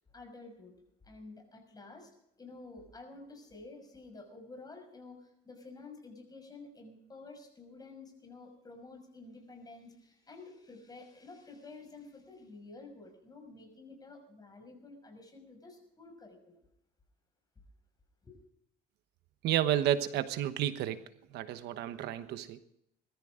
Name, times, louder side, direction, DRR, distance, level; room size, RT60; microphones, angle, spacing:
voice 1, 0.1-0.8 1.0-2.1 2.4-16.6 18.2-18.4, left 3 dB, 25° left, 4 dB, 6.2 m, -51 dB
voice 2, 19.4-21.0 21.3-22.6, right 11 dB, 80° right, 11 dB, 1.2 m, -31 dB
21.5 x 14.0 x 3.8 m, 0.76 s
cardioid pair, 110°, 17 cm